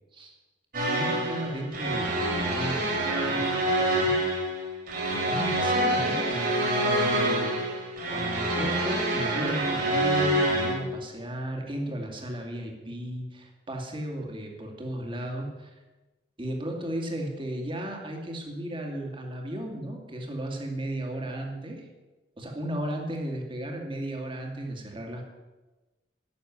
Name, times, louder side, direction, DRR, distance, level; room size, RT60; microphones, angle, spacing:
sound 1, 0.7-10.7, right 1 dB, 55° right, 4.2 m, -26 dB
voice 1, 0.8-4.4 5.0-7.6 8.1-15.7 16.4-21.9 22.4-25.2, right 1 dB, 30° right, 2 dB, 2.4 m, -35 dB
11.5 x 6.9 x 9.6 m, 1.2 s
head